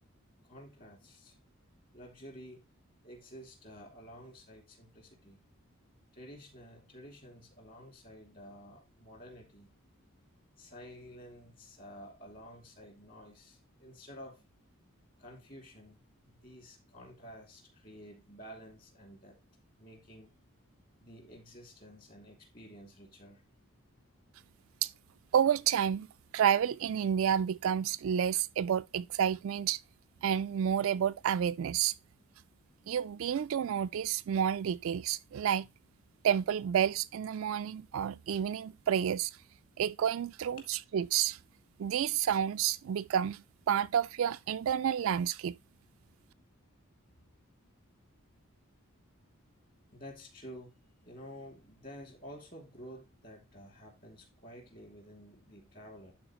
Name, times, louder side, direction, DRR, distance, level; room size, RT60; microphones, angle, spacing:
voice 1, 0.4-1.4 1.9-2.6 3.0-5.4 6.1-9.7 10.6-14.4 15.2-19.4 19.8-20.3 21.0-23.4 40.6-40.7 49.9-56.1, equal, 40° left, 2.7 m, -51 dB
voice 2, 25.3-26.1 26.3-29.8 30.2-31.9 32.9-35.7 36.2-39.3 39.8-41.4 41.8-45.6, right 9 dB, 70° right, 0.3 m, -30 dB
11.0 x 4.3 x 3.0 m
head